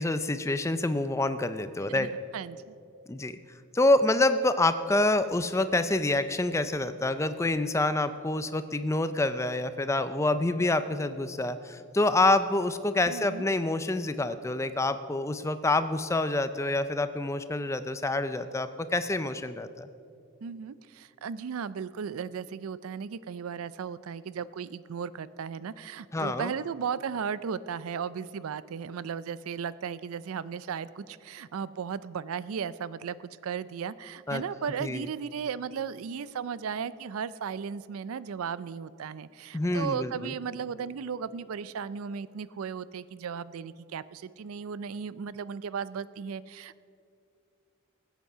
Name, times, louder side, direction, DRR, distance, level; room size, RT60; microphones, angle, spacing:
voice 1, 0.0-2.1 3.1-3.4 3.7-19.9 26.1-26.5 34.3-34.4 34.8-35.1 39.5-40.3, left 2 dB, 15° left, 11 dB, 0.4 m, -27 dB
voice 2, 1.9-2.7 13.1-13.5 20.4-33.2 33.4-46.8, right 7 dB, 85° right, 17 dB, 0.4 m, -36 dB
19.5 x 8.2 x 5.6 m, 2.5 s
head